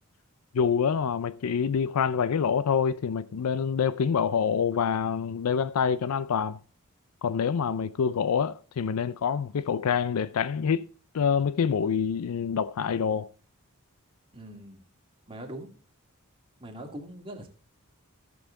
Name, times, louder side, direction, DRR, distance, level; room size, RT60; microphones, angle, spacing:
voice 1, 0.5-6.6 7.2-10.9 11.1-13.3, left 7 dB, 80° left, 0.4 m, -26 dB
voice 2, 14.3-14.8 15.3-15.7 16.6-17.5, right 1 dB, 25° right, 2.1 m, -41 dB
14.0 x 7.2 x 3.7 m
head